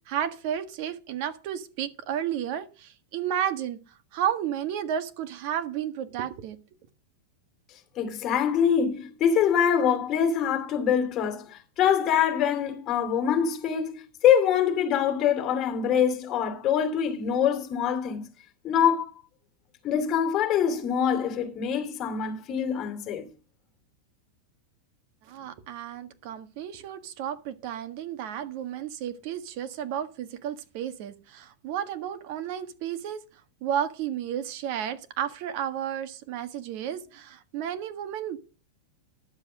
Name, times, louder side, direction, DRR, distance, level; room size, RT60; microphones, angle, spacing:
voice 1, 0.1-3.8 4.1-6.6 25.2-33.2 33.6-38.4, right 10 dB, 45° right, 1.6 m, -32 dB
voice 2, 8.0-13.9 14.2-18.2 18.6-19.1 19.8-23.3, left 8 dB, 25° left, 2.8 m, -24 dB
11.0 x 7.4 x 6.2 m
supercardioid pair, 160°, 0 cm